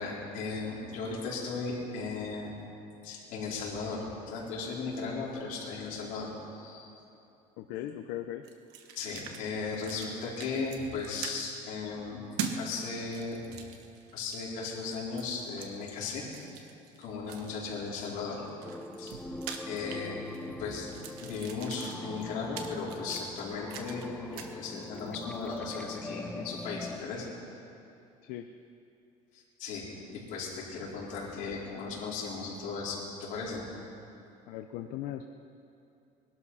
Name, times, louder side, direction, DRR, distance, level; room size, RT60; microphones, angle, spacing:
voice 1, 0.0-2.5 3.0-7.0 9.0-12.2 12.6-13.4 14.1-16.3 17.0-18.4 19.0-19.2 19.7-20.2 20.5-20.9 21.2-27.3 29.3-29.8 30.1-33.6, left 4 dB, 55° left, -5 dB, 4.3 m, -36 dB
voice 2, 7.6-8.4 28.3-28.5 34.5-35.2, left 12 dB, 70° left, 6 dB, 0.7 m, -38 dB
sound 1, 8.4-9.4 9.7-10.1 10.4-11.4 12.4-12.6 13.0-14.6 15.2-15.7 16.3-17.7 18.3-20.5 20.8-24.1 24.3-24.5, right 7 dB, 90° right, 1.3 m, -42 dB
sound 2, 18.6-27.0, left 2 dB, 5° left, 0.4 m, -42 dB
21.0 x 12.0 x 5.7 m, 2.7 s
cardioid pair, 160°, 16 cm